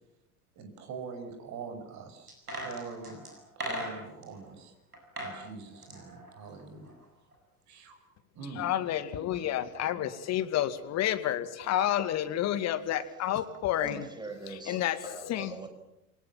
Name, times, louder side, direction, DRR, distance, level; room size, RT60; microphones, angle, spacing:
voice 1, 0.5-3.2 3.6-4.7 5.2-6.9 7.7-8.0 8.3-8.7 9.4-9.5, right 5 dB, 40° right, 7 dB, 6.3 m, -44 dB
sound 1, 2.3-4.3 4.9-5.4 5.7-7.0 7.3-7.4, equal, 85° right, 7.7 m, -38 dB
voice 2, 8.6-14.1 14.5-15.5, left 12 dB, 35° left, 12 dB, 2.3 m, -30 dB
voice 3, 13.8-15.7, right 3 dB, 10° right, 6 dB, 5.8 m, -42 dB
28.5 x 24.0 x 7.5 m, 0.85 s
figure-of-eight pair, 80°, 44 cm